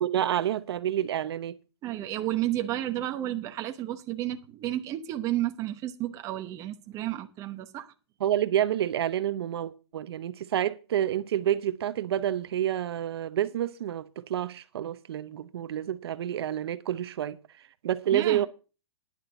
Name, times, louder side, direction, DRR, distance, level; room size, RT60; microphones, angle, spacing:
voice 1, 0.0-1.6 8.2-18.5, right 11 dB, 60° right, 0.7 m, -29 dB
voice 2, 1.8-7.9 18.1-18.5, right 14 dB, 20° right, 1.0 m, -32 dB
11.0 x 6.6 x 6.9 m
hypercardioid pair, 155°, 15 cm